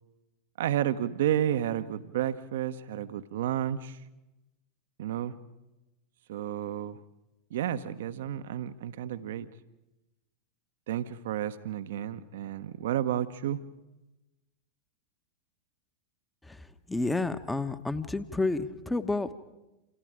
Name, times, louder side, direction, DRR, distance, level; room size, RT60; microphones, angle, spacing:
voice 1, 0.6-4.0 5.0-5.3 6.3-7.0 7.5-9.5 10.9-13.6, right 11 dB, 55° right, 12 dB, 1.1 m, -31 dB
voice 2, 16.9-19.3, left 3 dB, 5° left, 11 dB, 1.3 m, -30 dB
28.5 x 28.0 x 5.1 m, 1.0 s
figure-of-eight pair, 90°, 0 cm